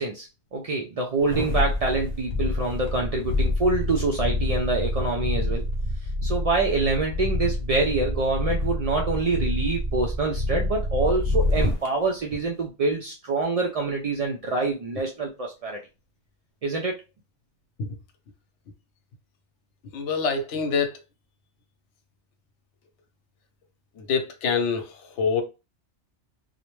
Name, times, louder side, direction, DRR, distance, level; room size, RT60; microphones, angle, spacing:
voice 1, 0.0-5.6 6.2-15.8 16.6-17.0, right 3 dB, 75° right, 0.3 m, -26 dB
sound 1, 1.2-11.9 12.3-12.4, left 1 dB, 45° left, 0.7 m, -27 dB
voice 2, 19.9-21.0 24.0-25.4, left 5 dB, 85° left, 0.9 m, -26 dB
2.4 x 2.1 x 3.0 m
omnidirectional pair, 1.2 m